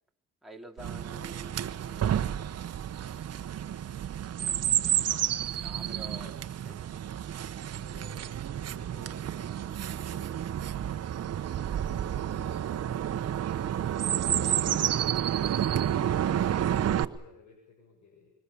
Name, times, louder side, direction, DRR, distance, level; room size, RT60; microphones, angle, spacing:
voice 1, 0.4-2.3 5.6-6.3 6.6-6.8, right 1 dB, ahead, 0 dB, 3.5 m, -48 dB
Chirp tweet, 0.8-17.0, right 10 dB, 55° right, 1.1 m, -30 dB
voice 2, 3.8-4.6 5.9-6.4 7.8-10.5 11.4-13.1 14.2-18.3, left 4 dB, 65° left, 1 dB, 7.4 m, -56 dB
25.0 x 23.0 x 7.0 m, 0.80 s
cardioid pair, 90°, 30 cm